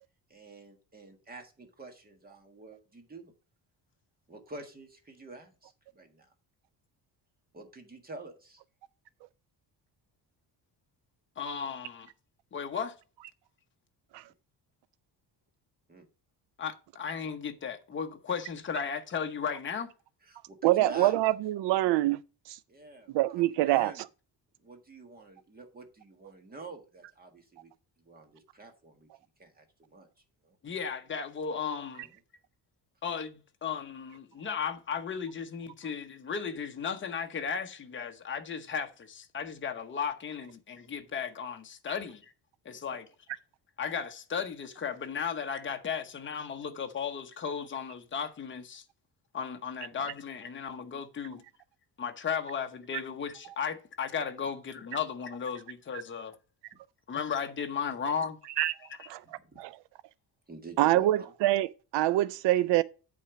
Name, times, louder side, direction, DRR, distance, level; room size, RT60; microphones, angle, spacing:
voice 1, 0.3-3.3 4.3-6.3 7.5-8.6 15.9-16.0 20.2-21.2 22.7-24.0 24.6-27.7 28.0-29.1 29.4-30.1 30.4-30.6 42.7-43.0 49.9-50.1 59.2-59.6 60.5-61.2, right 2 dB, 20° right, 1.6 m, -47 dB
voice 2, 11.4-12.1 12.5-12.9 16.6-19.9 30.6-32.1 33.0-42.3 42.6-43.1 43.8-48.8 49.3-51.4 52.0-56.3 57.1-58.4, left 6 dB, 30° left, 0.9 m, -35 dB
voice 3, 20.6-22.2 22.5-22.6 23.1-24.0 58.6-58.7 59.1-59.2 59.6-59.8 60.8-62.8, right 16 dB, 80° right, 0.5 m, -25 dB
8.4 x 4.4 x 6.0 m
cardioid pair, 170°, 42 cm